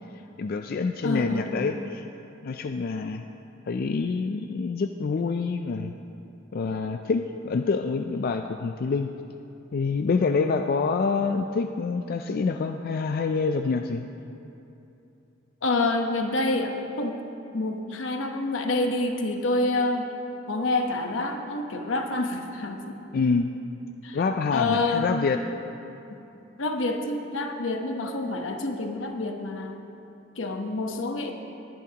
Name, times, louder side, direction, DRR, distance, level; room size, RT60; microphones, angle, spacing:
voice 1, 0.4-2.0 2.4-3.2 3.7-5.9 6.5-9.1 9.7-14.1 23.1-23.5 24.1-25.4, left 4 dB, 50° left, 6 dB, 0.4 m, -26 dB
voice 2, 1.0-1.5 15.6-17.2 17.5-20.1 20.5-23.0 24.0-24.2 24.5-25.3 26.6-29.8 30.4-31.3, left 2 dB, 80° left, 4 dB, 1.0 m, -27 dB
19.5 x 10.5 x 2.9 m, 2.8 s
head